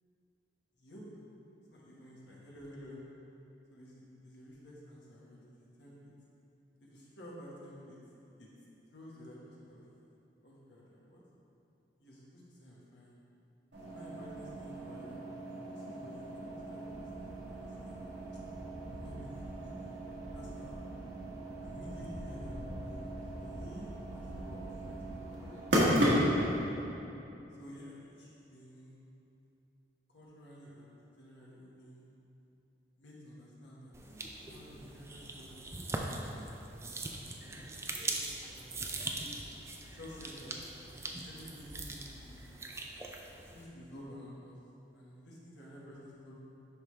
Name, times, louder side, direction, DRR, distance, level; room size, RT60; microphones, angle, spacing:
voice 1, 1.7-3.0 3.7-5.9 6.8-8.0 8.4-8.5 8.9-9.8 10.4-11.2 12.0-13.2 13.9-15.2 15.7-18.2 18.9-20.0 20.3-20.8 21.6-22.5 22.8-23.1 23.4-25.7 27.5-29.0 30.1-32.0 33.0-33.9 34.4-35.5 37.4-38.9 39.9-40.6 41.2-42.5 43.5-44.6 44.9-46.3, equal, 75° left, -6 dB, 1.5 m, -52 dB
sound 1, 13.7-26.6, equal, 80° right, 1.4 m, -35 dB
sound 2, 33.9-43.6, right 2 dB, 15° right, 0.4 m, -41 dB
10.0 x 3.6 x 3.3 m, 2.8 s
head